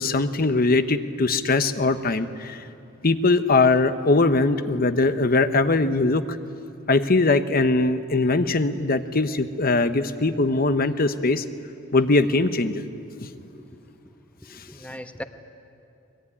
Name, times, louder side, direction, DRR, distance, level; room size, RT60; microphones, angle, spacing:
voice 1, 0.0-2.6 3.0-6.2 6.9-11.4 11.9-12.8, left 3 dB, 45° left, 10 dB, 0.9 m, -21 dB
voice 2, 13.4-13.8 14.0-15.2, equal, 5° left, 8 dB, 1.0 m, -41 dB
23.0 x 21.0 x 9.9 m, 2.6 s
head